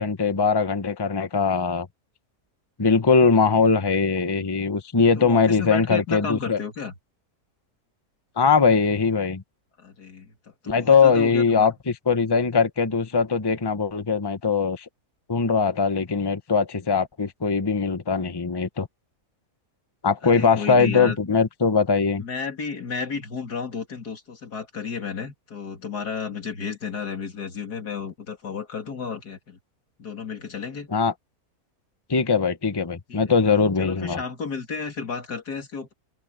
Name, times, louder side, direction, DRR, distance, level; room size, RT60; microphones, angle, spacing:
voice 1, 0.0-1.9 2.8-6.6 8.4-9.4 10.7-14.8 15.3-18.9 20.0-22.2 30.9-31.1 32.1-34.2, left 5 dB, 20° left, 1.0 m, -21 dB
voice 2, 5.2-6.9 9.8-10.3 10.6-11.7 20.2-21.4 22.2-29.6 30.0-30.9 33.1-33.2 33.8-35.9, left 5 dB, 85° left, 3.1 m, -32 dB
open air
omnidirectional pair, 1.6 m